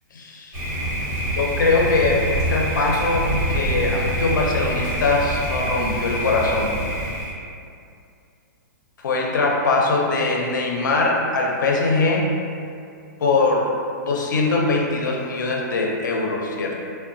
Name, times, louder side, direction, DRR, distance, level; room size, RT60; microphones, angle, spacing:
voice 1, 0.1-0.7 1.4-6.8 9.0-12.3 13.2-13.7 14.0-16.8, left 3 dB, 85° left, -1 dB, 0.5 m, -22 dB
Thunder, 0.5-7.3, right 1 dB, 45° right, 1.0 m, -25 dB
2.8 x 2.1 x 2.6 m, 2.4 s
hypercardioid pair, 165°, 10 cm